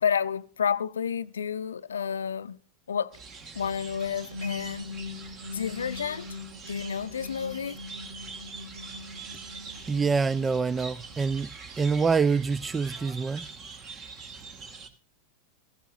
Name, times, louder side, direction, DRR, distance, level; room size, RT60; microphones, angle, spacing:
voice 1, 0.0-2.6 2.9-3.2 3.6-4.9 5.5-6.4 6.7-7.8, left 7 dB, 70° left, 0.6 m, -30 dB
sound 1, 3.1-14.9, right 4 dB, 30° right, 2.1 m, -44 dB
sound 2, 3.4-11.2, left 4 dB, 80° right, 3.3 m, -42 dB
voice 2, 9.9-13.5, right 5 dB, 15° right, 0.5 m, -26 dB
16.5 x 14.5 x 2.6 m
figure-of-eight pair, 90°, 0 cm